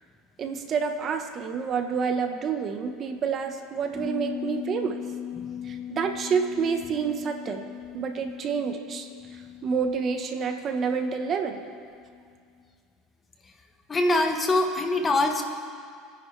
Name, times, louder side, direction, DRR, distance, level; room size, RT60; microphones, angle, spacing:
voice 1, 0.4-5.0 5.6-9.1 9.6-11.6, right 6 dB, 40° right, 6 dB, 1.3 m, -28 dB
sound 1, 3.9-12.2 12.6-12.7, left 8 dB, ahead, 4.8 m, -39 dB
voice 2, 13.9-15.4, left 2 dB, 25° left, 4 dB, 1.5 m, -23 dB
28.5 x 10.0 x 3.4 m, 2.2 s
supercardioid pair, 110°, 0 cm